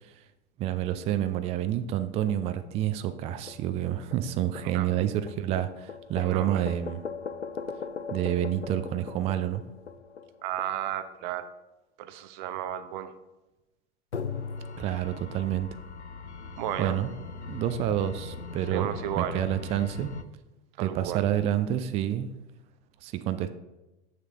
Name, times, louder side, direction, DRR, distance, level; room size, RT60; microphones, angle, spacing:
voice 1, 0.6-7.0 8.1-9.6 14.8-15.7 16.8-17.1 17.5-20.1 20.8-22.3 23.0-23.5, right 11 dB, 20° right, 11 dB, 0.4 m, -28 dB
sound 1, 2.3-2.9 3.5-10.9 14.1-20.2, left 4 dB, 90° left, 0.5 m, -40 dB
voice 2, 6.2-6.7 10.4-11.5 12.0-13.1 16.6-17.0 18.7-19.4 20.8-21.2, right 11 dB, 45° right, 11 dB, 0.7 m, -33 dB
7.5 x 6.4 x 3.7 m, 1.0 s
figure-of-eight pair, 90°, 33 cm